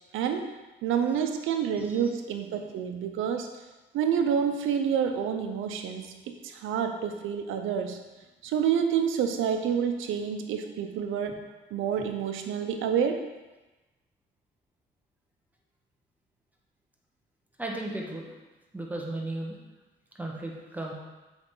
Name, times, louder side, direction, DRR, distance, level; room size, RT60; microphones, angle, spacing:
voice 1, 0.1-0.5 0.8-3.5 3.9-8.0 8.4-11.4 11.7-13.2, right 7 dB, 85° right, 6 dB, 0.8 m, -28 dB
voice 2, 17.6-18.3 18.7-19.6 20.2-20.9, right 2 dB, 10° right, -1 dB, 1.3 m, -35 dB
7.0 x 4.8 x 3.9 m, 1.1 s
cardioid pair, 90°, 20 cm